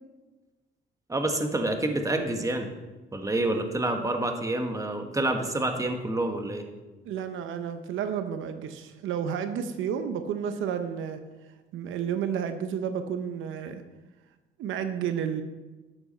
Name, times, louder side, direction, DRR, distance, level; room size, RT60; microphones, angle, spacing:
voice 1, 1.1-2.7 3.1-6.6, right 2 dB, 15° right, 5 dB, 1.4 m, -28 dB
voice 2, 7.0-11.2 11.7-13.8 14.6-15.4, right 8 dB, 85° right, 9 dB, 0.8 m, -31 dB
11.5 x 8.2 x 4.3 m, 1.2 s
cardioid pair, 90°, 20 cm